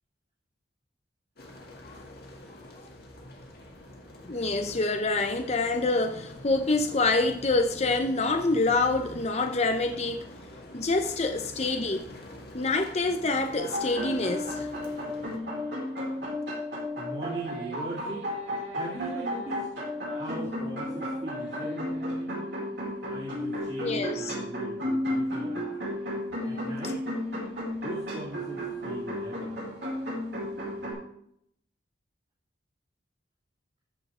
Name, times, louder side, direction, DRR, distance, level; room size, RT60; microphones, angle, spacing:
sound 1, 1.4-15.4, left 1 dB, 55° left, 1.9 m, -46 dB
voice 1, 4.3-10.2 10.7-12.0 12.5-14.7 23.8-24.3 26.3-26.7, left 3 dB, 35° left, 0.7 m, -26 dB
sound 2, 13.6-30.9, left 1 dB, 65° right, 4.5 m, -33 dB
voice 2, 16.9-18.3 18.7-19.7 20.1-22.4 23.1-25.6 26.4-27.1 27.8-29.5, right 2 dB, 35° right, 2.6 m, -39 dB
14.5 x 5.2 x 4.4 m
head